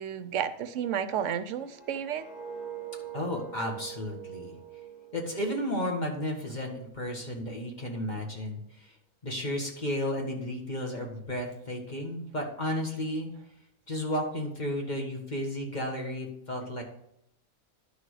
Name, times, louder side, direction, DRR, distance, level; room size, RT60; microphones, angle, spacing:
voice 1, 0.0-2.3, right 8 dB, 65° right, 12 dB, 0.9 m, -32 dB
sound 1, 1.4-6.4 6.8-7.1, right 9 dB, 50° left, 3.1 m, -44 dB
voice 2, 3.1-4.5 5.1-8.9 9.2-13.3 13.9-16.8, left 1 dB, 30° left, 1 dB, 1.8 m, -33 dB
11.0 x 6.2 x 4.8 m, 0.77 s
omnidirectional pair, 1.5 m